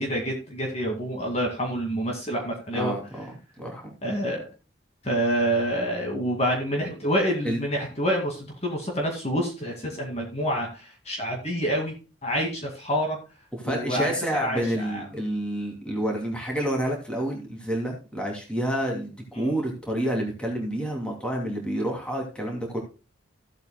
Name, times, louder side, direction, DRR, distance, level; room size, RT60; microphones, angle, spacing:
voice 1, 0.0-2.9 4.0-4.5 5.0-11.9 12.2-13.2 13.6-14.1 14.4-15.1 19.4-19.5, equal, 35° left, 1 dB, 2.2 m, -27 dB
voice 2, 2.7-3.9 7.4-7.6 13.5-22.8, right 1 dB, 5° left, 0 dB, 2.7 m, -29 dB
15.5 x 8.1 x 2.2 m, 0.31 s
head